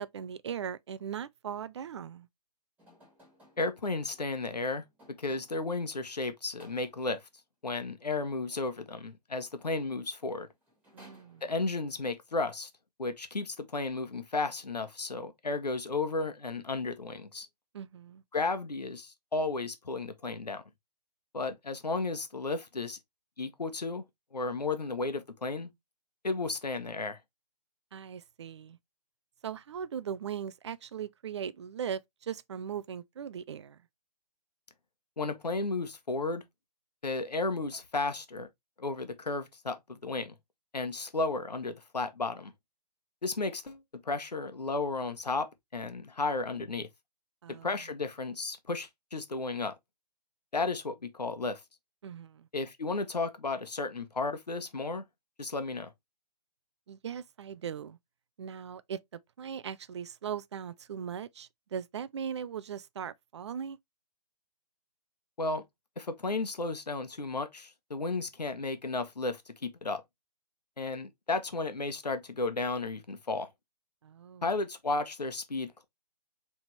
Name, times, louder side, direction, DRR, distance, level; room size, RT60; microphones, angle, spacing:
voice 1, 0.0-2.3 10.9-11.4 17.7-18.2 27.9-28.8 29.4-33.8 47.4-47.7 52.0-52.5 56.9-58.0 58.4-63.8 74.0-74.5, right 8 dB, 45° right, 0.4 m, -39 dB
sound 1, 2.8-5.8 6.6-7.2 9.9-10.0 10.3-11.9, equal, 10° right, 2.4 m, -60 dB
voice 2, 3.6-4.8 5.2-7.2 7.6-10.5 11.4-12.7 13.0-17.5 18.3-20.6 21.3-23.0 23.4-24.0 24.3-25.7 26.2-27.2 35.2-36.4 37.0-38.5 38.8-40.3 40.7-42.5 43.2-43.8 44.0-46.9 47.5-49.7 50.5-51.6 52.5-55.0 55.4-55.9 65.4-65.6 66.0-70.0 70.8-73.5 74.4-75.8, left 3 dB, 85° left, 1.0 m, -33 dB
4.7 x 3.4 x 3.2 m
figure-of-eight pair, 140°, 20 cm